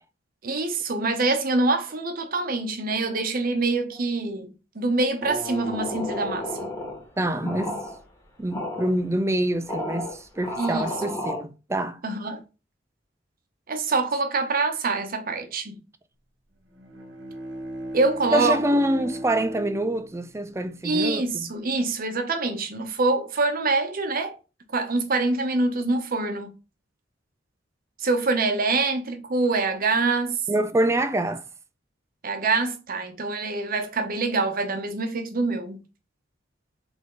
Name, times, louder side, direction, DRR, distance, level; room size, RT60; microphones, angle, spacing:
voice 1, 0.4-6.7 10.6-10.9 12.0-12.4 13.7-15.8 17.9-18.6 20.8-24.4 24.7-26.5 28.0-30.4 32.2-35.8, right 3 dB, 50° right, 0.8 m, -25 dB
sound 1, 5.2-7.0 7.4-8.0 8.5-8.9 9.7-11.4, left 1 dB, 15° left, 1.4 m, -32 dB
voice 2, 7.2-7.8 8.4-12.0 18.3-21.5 30.5-31.4, right 1 dB, 15° right, 0.4 m, -26 dB
Bowed string instrument, 16.6-21.3, right 1 dB, 80° right, 1.1 m, -38 dB
3.7 x 3.5 x 3.8 m
head